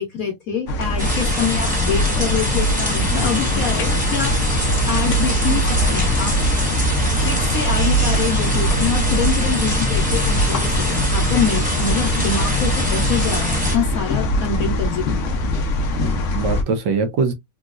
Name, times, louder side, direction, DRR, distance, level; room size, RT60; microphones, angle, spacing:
voice 1, 0.0-4.3 4.9-6.6 7.2-15.6, left 6 dB, 60° left, 1.0 m, -25 dB
sound 1, 0.7-16.6, equal, 80° left, 0.6 m, -22 dB
sound 2, 1.0-13.8, equal, 5° right, 0.9 m, -24 dB
voice 2, 3.1-3.7 16.0-17.3, right 5 dB, 75° right, 1.3 m, -24 dB
3.9 x 2.3 x 2.4 m
omnidirectional pair, 2.2 m